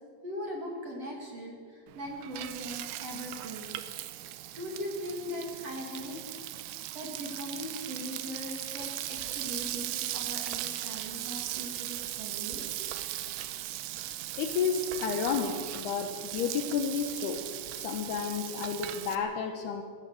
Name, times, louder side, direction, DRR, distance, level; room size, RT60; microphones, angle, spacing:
voice 1, 0.2-3.7 4.5-6.2 6.9-12.9, equal, 40° right, 0 dB, 2.6 m, -40 dB
Frying (food), 1.9-19.2, right 14 dB, 75° right, 3.1 m, -38 dB
voice 2, 14.4-17.5 17.8-19.8, left 6 dB, 70° left, 6 dB, 2.6 m, -31 dB
20.5 x 16.5 x 7.9 m, 2.2 s
omnidirectional pair, 5.6 m